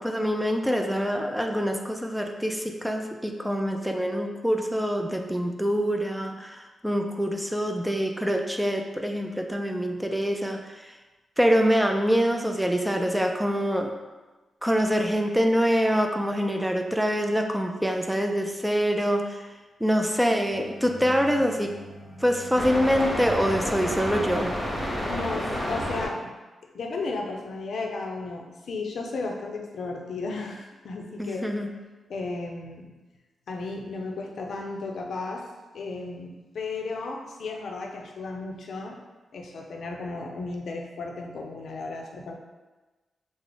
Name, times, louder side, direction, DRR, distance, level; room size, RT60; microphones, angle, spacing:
voice 1, 0.0-10.9 11.4-13.9 14.6-19.4 19.8-21.8 22.2-24.5 31.2-31.7, equal, 5° right, 4 dB, 0.3 m, -25 dB
sound 1, 20.5-26.1, equal, 30° left, 0.8 m, -31 dB
voice 2, 25.1-26.3 26.7-31.5 32.1-32.9 33.5-35.4 35.7-39.0 39.3-42.3, left 3 dB, 75° left, 1 dB, 0.5 m, -34 dB
3.3 x 2.0 x 3.7 m, 1.2 s
cardioid pair, 90°, 0 cm